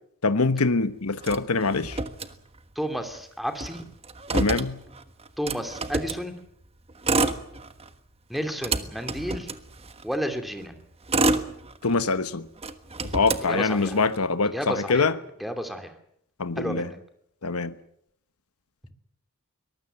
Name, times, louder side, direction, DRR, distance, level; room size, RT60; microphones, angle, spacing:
voice 1, 0.2-2.0 4.3-4.8 11.8-12.5 13.1-15.1 16.4-16.9 17.4-17.7, left 4 dB, 85° left, 1.1 m, -24 dB
Motor vehicle (road), 1.2-2.8 3.1-3.2 3.5-6.2 6.9-7.9 8.3-10.2 10.7-12.2 12.6-14.2, right 3 dB, 30° right, 1.4 m, -28 dB
voice 2, 2.8-3.8 5.4-6.3 8.3-9.5 10.0-10.7 13.4-14.0 14.4-15.1 15.4-15.9 16.6-17.0, equal, ahead, 2.9 m, -31 dB
23.0 x 19.5 x 7.9 m
head